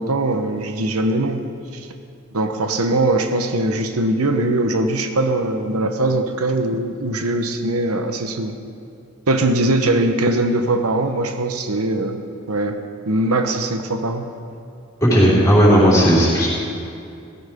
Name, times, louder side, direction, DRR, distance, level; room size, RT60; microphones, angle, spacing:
voice 1, 0.0-1.4 1.7-1.9 2.3-8.6 9.3-12.2 12.5-12.8 13.1-14.3, right 2 dB, 90° right, 6 dB, 1.0 m, -21 dB
voice 2, 15.0-16.5, equal, 15° left, -7 dB, 4.4 m, -14 dB
17.5 x 15.5 x 3.6 m, 2.5 s
head